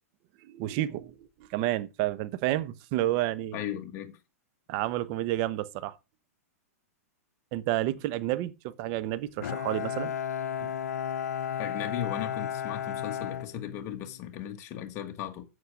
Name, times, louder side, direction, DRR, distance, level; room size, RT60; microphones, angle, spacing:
voice 1, 0.4-3.6 4.7-6.0 7.5-10.1 10.6-10.7, right 15 dB, 40° right, 1.0 m, -30 dB
voice 2, 3.5-4.2 11.6-15.4, left 10 dB, 35° left, 1.6 m, -36 dB
Bowed string instrument, 9.4-14.3, left 9 dB, 85° left, 0.7 m, -34 dB
8.3 x 7.8 x 5.0 m
hypercardioid pair, 140°, 8 cm